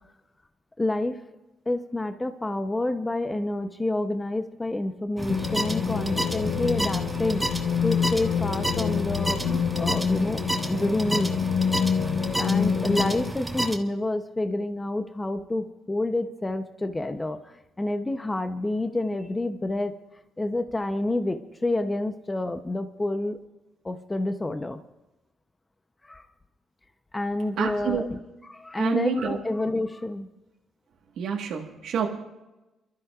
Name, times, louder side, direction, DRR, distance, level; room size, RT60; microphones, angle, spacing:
voice 1, 0.8-1.2 1.7-10.4 10.7-11.3 12.0-19.9 20.4-23.4 23.8-24.8 26.0-26.2 27.1-28.2 28.4-30.3, left 2 dB, 15° left, 8 dB, 0.7 m, -28 dB
sound 1, 5.2-13.8, right 1 dB, 10° right, 1.3 m, -31 dB
sound 2, 5.3-13.3, left 7 dB, 75° left, 0.4 m, -27 dB
voice 2, 27.6-28.0 28.8-29.4 31.2-32.2, right 8 dB, 75° right, 0 dB, 1.5 m, -28 dB
29.5 x 12.5 x 2.4 m, 1.0 s
cardioid pair, 90°, 0 cm